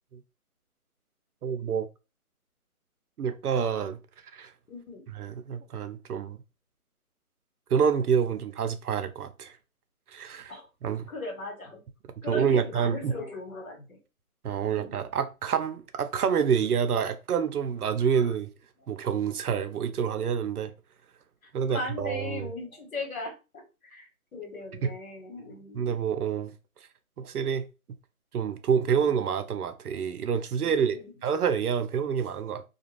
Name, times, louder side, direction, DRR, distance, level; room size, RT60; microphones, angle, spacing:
voice 1, 1.4-1.9 3.2-4.0 4.3-4.5 5.1-6.4 7.7-9.5 10.1-10.5 10.8-11.1 12.3-13.1 14.4-18.5 18.9-20.7 21.5-22.5 24.8-24.9 25.7-26.5 27.2-27.7 28.3-31.0 31.2-32.6, right 7 dB, 80° right, 0.6 m, -27 dB
voice 2, 4.7-5.1 10.5-10.7 11.1-11.8 12.2-14.0 14.6-14.9 18.1-18.3 21.4-25.9 30.6-31.1, left 2 dB, 65° left, 1.4 m, -39 dB
2.5 x 2.3 x 3.1 m
hypercardioid pair, 170°, 44 cm